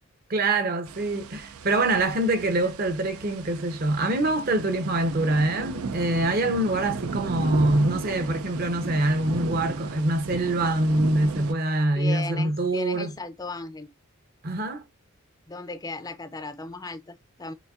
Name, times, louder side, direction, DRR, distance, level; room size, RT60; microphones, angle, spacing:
voice 1, 0.3-13.1 14.4-14.8, right 2 dB, 45° right, 0.8 m, -24 dB
sound 1, 0.9-11.5, right 4 dB, 85° right, 0.5 m, -35 dB
voice 2, 12.0-13.9 15.5-17.5, left 3 dB, 15° left, 0.4 m, -36 dB
6.3 x 2.6 x 2.4 m
head